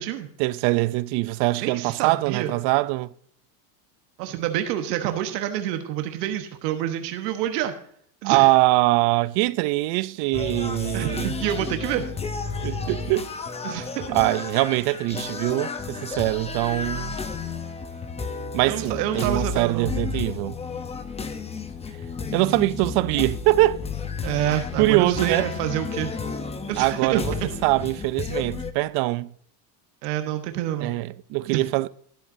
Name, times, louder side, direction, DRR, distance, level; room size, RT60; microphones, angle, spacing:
voice 1, 0.4-3.1 8.2-11.3 12.6-13.3 14.1-17.2 18.5-20.6 22.3-23.8 24.8-25.5 26.8-27.3 27.6-29.3 30.8-31.9, right 20 dB, 55° right, 0.5 m, -23 dB
voice 2, 1.6-2.5 4.2-7.7 8.2-8.5 10.9-12.0 13.6-14.2 18.6-19.9 24.2-26.1 26.7-27.2 30.0-30.9 31.5-31.6, right 11 dB, 85° right, 1.2 m, -27 dB
sound 1, 10.3-28.7, left 4 dB, 15° left, 0.7 m, -32 dB
12.5 x 10.5 x 2.6 m
supercardioid pair, 120°, 47 cm